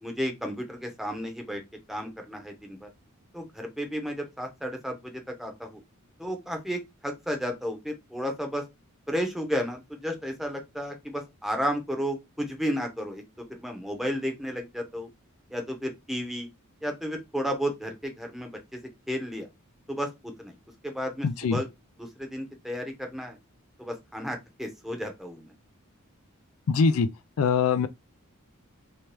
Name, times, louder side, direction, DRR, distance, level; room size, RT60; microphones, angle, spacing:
voice 1, 0.0-1.6 1.9-2.9 3.3-5.8 6.2-8.6 9.1-15.1 15.5-16.5 16.8-18.8 19.1-19.5 19.9-20.6 20.8-21.7 22.0-23.4 23.8-25.5, equal, ahead, 0.8 m, -33 dB
voice 2, 21.2-21.6 26.7-27.1 27.4-27.9, left 5 dB, 70° left, 0.4 m, -23 dB
3.1 x 2.9 x 3.3 m
head